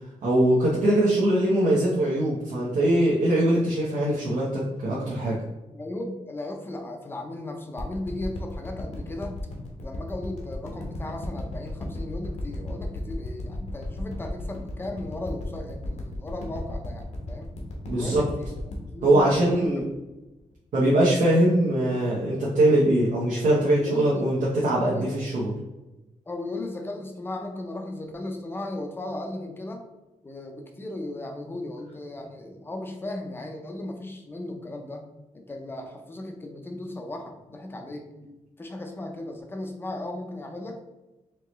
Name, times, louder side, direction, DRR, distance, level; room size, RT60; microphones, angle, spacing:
voice 1, 0.2-5.4 17.9-18.2 19.0-19.8 20.7-24.4 24.6-25.5, right 1 dB, 80° right, -6 dB, 0.9 m, -22 dB
voice 2, 5.7-9.4 9.8-17.5 17.9-18.5 18.9-19.7 20.0-20.1 23.8-24.3 24.8-25.2 26.3-29.8 30.2-35.0 35.3-38.1 38.6-40.8, left 2 dB, 15° left, 3 dB, 0.5 m, -36 dB
sound 1, 7.8-20.1 20.5-20.6, left 1 dB, 60° left, 0.9 m, -34 dB
4.5 x 3.1 x 3.0 m, 1.1 s
wide cardioid pair, 175°, 13 cm